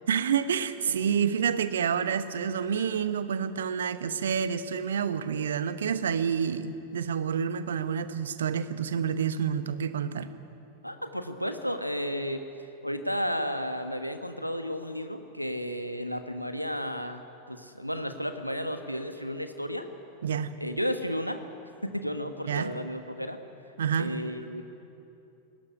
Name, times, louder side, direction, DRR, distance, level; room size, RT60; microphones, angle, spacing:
voice 1, 0.1-10.3 20.2-20.5 22.5-22.7 23.8-24.1, right 7 dB, 65° right, 12 dB, 1.1 m, -28 dB
voice 2, 10.8-12.5 12.8-17.2 17.5-19.9 20.6-21.4 21.8-23.4 24.0-24.6, equal, 90° left, 7 dB, 1.4 m, -33 dB
21.0 x 18.0 x 9.9 m, 2.8 s
figure-of-eight pair, 90°, 0 cm